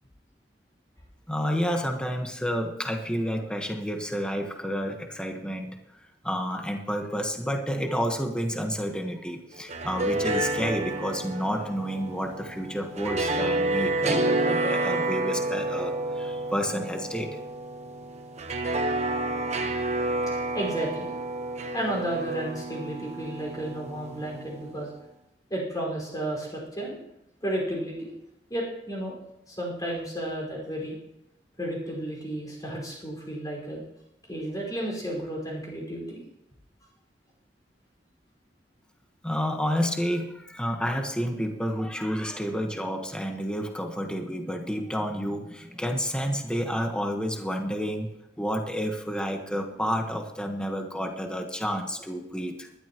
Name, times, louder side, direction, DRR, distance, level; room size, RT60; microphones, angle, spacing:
voice 1, 1.3-5.8 6.2-17.4 39.2-48.1 48.4-52.7, equal, 5° left, 3 dB, 1.3 m, -30 dB
sound 1, 9.5-24.7, right 2 dB, 40° right, 1.1 m, -30 dB
voice 2, 20.5-21.1 21.7-24.9 25.5-27.0 27.4-28.1 28.5-29.1 29.5-31.0 31.6-33.8 34.3-36.2, right 1 dB, 20° left, -2 dB, 5.2 m, -32 dB
19.5 x 12.5 x 3.1 m, 0.85 s
head